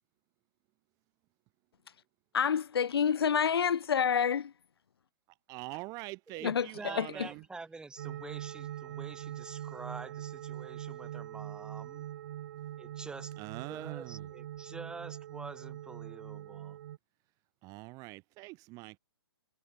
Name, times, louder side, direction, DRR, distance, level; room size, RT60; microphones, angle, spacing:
voice 1, 2.3-4.5 6.4-7.3, left 7 dB, 75° left, 0.9 m, -28 dB
voice 2, 5.5-7.4 13.4-14.3 17.6-19.0, right 24 dB, 25° right, 1.9 m, -44 dB
voice 3, 6.4-12.0 12.8-13.3 13.6-16.8, right 3 dB, 5° right, 4.0 m, -47 dB
sound 1, 8.0-17.0, right 12 dB, 50° right, 2.5 m, -43 dB
hypercardioid pair, 140°, 13 cm